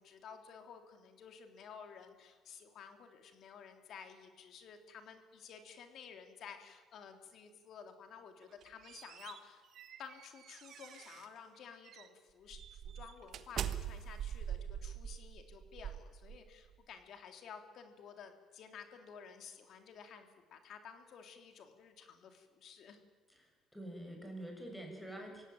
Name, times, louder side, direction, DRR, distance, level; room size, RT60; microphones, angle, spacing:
voice 1, 0.0-9.6 10.0-23.0, left 7 dB, 55° left, 6 dB, 3.3 m, -53 dB
sound 1, 8.4-11.4 11.9-12.1 12.5-16.8, right 9 dB, 55° right, 1.3 m, -44 dB
voice 2, 23.3-25.5, right 1 dB, 5° left, 2 dB, 6.5 m, -47 dB
25.5 x 17.0 x 9.2 m, 1.4 s
cardioid pair, 135°, 0 cm